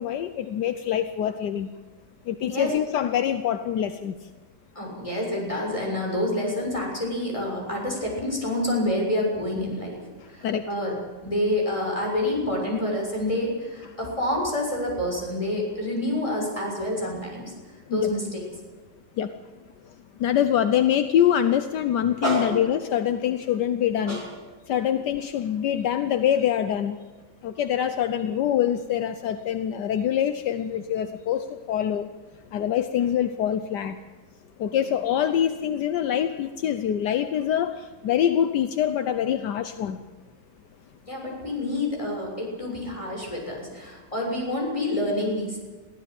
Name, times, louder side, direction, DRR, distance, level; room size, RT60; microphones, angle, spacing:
voice 1, 0.0-1.7 2.3-4.1 10.4-10.6 17.9-18.1 19.2-19.3 20.2-24.2 24.7-27.0 27.4-32.1 32.5-34.0 34.6-40.0, left 10 dB, 75° left, 10 dB, 1.4 m, -24 dB
voice 2, 4.7-10.9 11.2-17.5 17.9-18.5 22.2-22.6 24.1-24.2 34.7-34.8 41.1-45.6, left 1 dB, 15° left, -1 dB, 6.8 m, -28 dB
22.5 x 16.0 x 7.8 m, 1.4 s
omnidirectional pair, 1.9 m